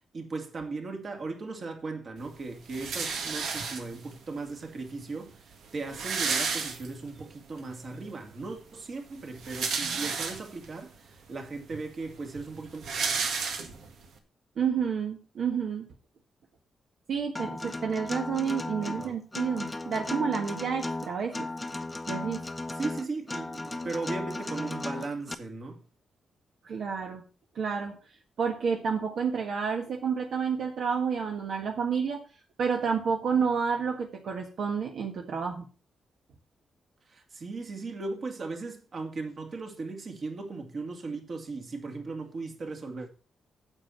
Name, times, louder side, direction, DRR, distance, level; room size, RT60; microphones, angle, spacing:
voice 1, 0.1-12.8 18.8-19.2 22.8-25.8 37.1-43.1, right 3 dB, 45° right, 2.3 m, -37 dB
sound 1, 2.7-4.1 5.0-5.1 5.3-5.4 5.7-7.2 7.7-7.8 9.2-10.7 11.3-11.4 11.7-14.1, right 5 dB, 85° right, 1.8 m, -32 dB
voice 2, 14.6-15.9 17.1-21.5 22.1-22.5 26.6-27.2 27.5-27.9 28.4-32.2 32.6-35.7, right 6 dB, 65° right, 1.5 m, -30 dB
Acoustic guitar, 17.3-25.3, left 2 dB, 15° left, 0.8 m, -35 dB
8.8 x 7.8 x 5.7 m
cardioid pair, 120°, 0 cm